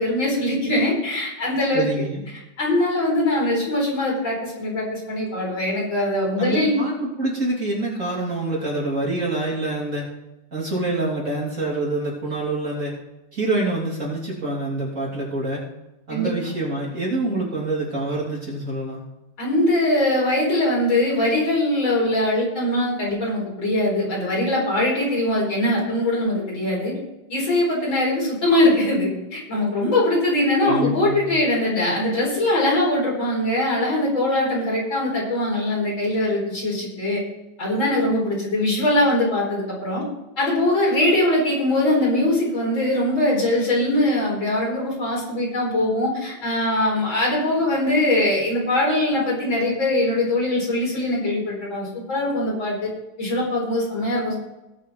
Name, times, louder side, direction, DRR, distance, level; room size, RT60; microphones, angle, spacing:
voice 1, 0.0-1.9 2.6-6.8 16.1-16.3 19.4-26.9 27.3-37.2 37.6-40.0 40.4-52.9 53.2-54.4, left 1 dB, 75° left, -4 dB, 5.2 m, -22 dB
voice 2, 1.7-2.2 6.4-10.0 10.5-12.9 13.3-15.6 16.1-19.0 30.6-31.4, right 2 dB, 40° right, -5 dB, 3.7 m, -26 dB
19.0 x 6.3 x 4.3 m, 0.96 s
omnidirectional pair, 2.1 m